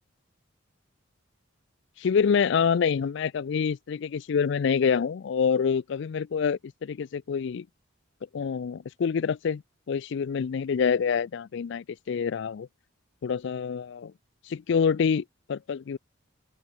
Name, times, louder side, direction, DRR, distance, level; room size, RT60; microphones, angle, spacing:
voice 1, 2.0-7.7 8.3-9.6 9.9-12.7 13.2-14.1 14.5-16.0, left 6 dB, 65° left, 0.4 m, -26 dB
open air
head